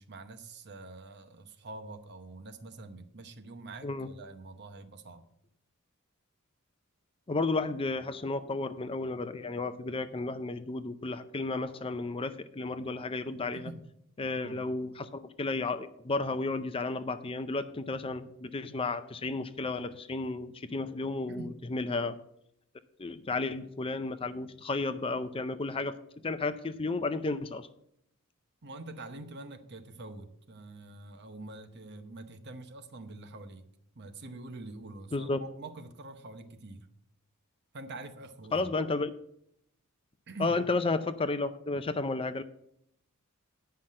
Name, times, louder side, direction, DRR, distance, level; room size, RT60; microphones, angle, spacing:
voice 1, 0.0-5.3 13.5-13.8 14.3-14.6 21.3-21.6 28.6-33.7 33.9-36.9 37.7-38.7 40.3-40.6, right 2 dB, 50° right, 9 dB, 0.9 m, -45 dB
voice 2, 7.3-13.7 14.2-22.2 23.0-26.0 26.2-27.7 35.1-35.4 38.5-39.1 40.4-42.4, left 3 dB, 25° left, 12 dB, 0.5 m, -32 dB
9.7 x 5.8 x 7.4 m, 0.73 s
head